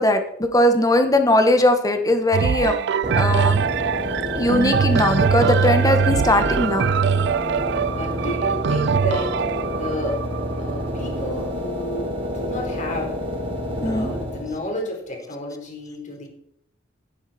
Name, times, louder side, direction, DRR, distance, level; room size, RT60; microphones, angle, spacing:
voice 1, 0.0-2.7 3.2-3.6 4.4-6.9 13.8-14.1, left 1 dB, 20° left, 7 dB, 1.5 m, -19 dB
sound 1, 2.3-12.1 12.8-12.9, right 6 dB, 65° right, 0.4 m, -22 dB
sound 2, 3.0-14.7, equal, 30° right, 1.6 m, -28 dB
voice 2, 7.9-9.4 9.7-10.2 10.6-13.2 13.8-16.3, left 1 dB, 40° left, 1 dB, 4.2 m, -31 dB
13.5 x 9.9 x 4.4 m, 0.74 s
head